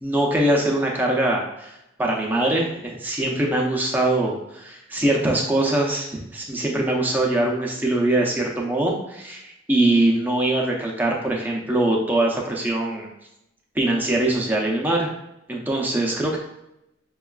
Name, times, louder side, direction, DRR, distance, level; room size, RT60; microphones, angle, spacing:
voice 1, 0.0-13.1 13.7-15.1 15.5-16.4, right 1 dB, 10° right, -2 dB, 0.5 m, -22 dB
6.0 x 2.3 x 2.3 m, 0.86 s
head